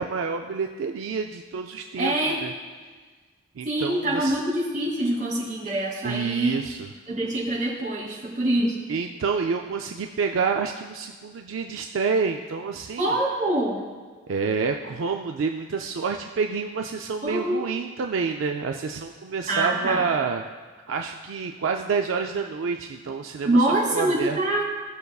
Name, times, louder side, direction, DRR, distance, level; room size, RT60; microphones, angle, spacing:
voice 1, 0.0-2.5 3.5-4.4 6.0-6.9 8.9-13.2 14.3-20.4 20.9-23.7 23.9-24.4, right 5 dB, 80° right, 4 dB, 0.4 m, -28 dB
voice 2, 2.0-2.4 3.6-6.6 7.1-8.7 13.0-13.8 17.2-17.7 19.5-20.0 23.4-24.6, right 1 dB, 40° right, -5 dB, 2.5 m, -25 dB
16.0 x 6.6 x 2.3 m, 1.4 s
head